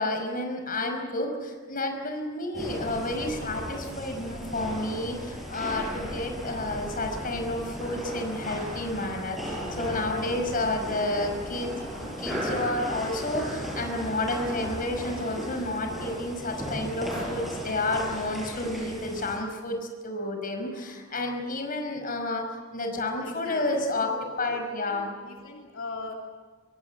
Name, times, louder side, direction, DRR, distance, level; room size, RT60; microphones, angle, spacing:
voice 1, 0.0-11.7 12.0-22.4 22.7-24.1 24.4-25.1, left 2 dB, 45° left, 4 dB, 5.3 m, -30 dB
sound 1, 2.5-19.4, equal, ahead, 7.5 m, -36 dB
voice 2, 23.2-24.6 24.8-26.1, left 2 dB, 80° left, 0 dB, 3.0 m, -40 dB
25.5 x 22.5 x 8.2 m, 1.5 s
head